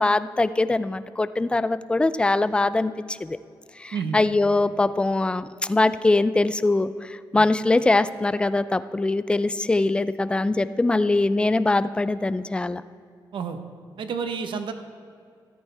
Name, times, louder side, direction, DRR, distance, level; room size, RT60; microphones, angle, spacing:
voice 1, 0.0-3.4 3.8-12.8, left 2 dB, 10° left, 14 dB, 0.3 m, -22 dB
voice 2, 14.0-14.7, right 6 dB, 80° right, 8 dB, 0.9 m, -30 dB
14.0 x 13.5 x 3.4 m, 2.4 s
wide cardioid pair, 150°, 8 cm